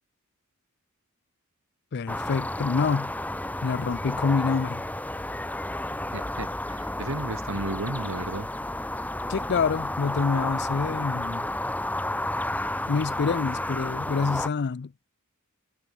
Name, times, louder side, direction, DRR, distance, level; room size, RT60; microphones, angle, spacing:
voice 1, 1.9-3.1 3.6-4.8 9.3-11.5 12.9-14.9, left 5 dB, 50° left, 0.5 m, -27 dB
sound 1, 2.1-14.5, left 1 dB, 5° left, 1.1 m, -31 dB
voice 2, 6.1-8.5 10.3-10.4, right 2 dB, 65° right, 2.0 m, -34 dB
head